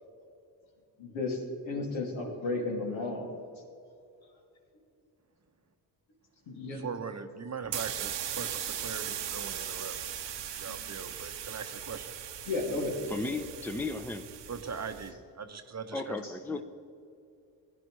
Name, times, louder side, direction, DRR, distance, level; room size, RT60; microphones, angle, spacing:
voice 1, 1.0-1.4 1.7-3.3 6.5-6.8 10.7-10.8 11.2-11.3 12.5-13.0, left 3 dB, 80° left, -1 dB, 2.5 m, -33 dB
voice 2, 6.7-10.0 10.6-12.2 14.5-16.2 16.5-16.6, right 5 dB, 35° right, 8 dB, 0.9 m, -40 dB
sound 1, 7.6-15.1, right 9 dB, 65° right, 1.0 m, -39 dB
voice 3, 13.1-14.3 15.9-16.6, left 3 dB, 5° left, 7 dB, 0.7 m, -35 dB
16.5 x 10.5 x 3.2 m, 2.6 s
supercardioid pair, 60°, 46 cm